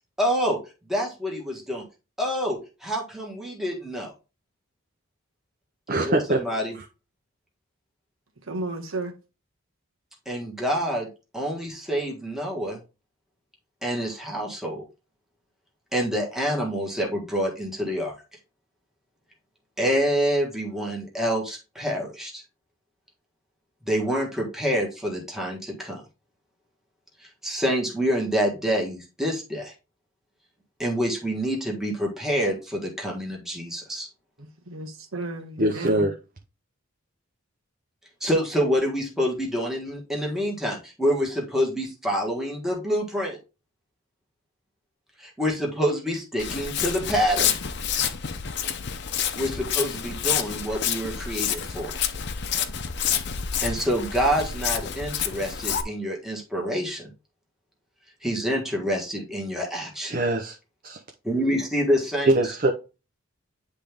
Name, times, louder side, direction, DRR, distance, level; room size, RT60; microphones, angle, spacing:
voice 1, 0.2-0.6 0.9-1.8 2.2-4.1 6.0-6.8 10.2-11.1 11.3-12.8 13.8-14.8 15.9-18.1 19.8-22.4 23.9-26.0 27.4-29.7 30.8-34.1 38.2-43.4 45.2-47.6 49.4-51.9 53.6-57.1 58.2-60.2 61.2-62.3, equal, ahead, 1.5 m, -27 dB
voice 2, 5.9-6.4 6.8-6.9 35.6-36.1 60.0-60.6 60.8-61.0 62.3-62.7, right 2 dB, 40° right, 0.7 m, -23 dB
voice 3, 8.4-9.1 34.4-36.1, right 2 dB, 70° right, 1.4 m, -33 dB
Walk footsteps, 46.4-55.8, left 8 dB, 50° left, 0.7 m, -28 dB
9.9 x 3.5 x 3.5 m
head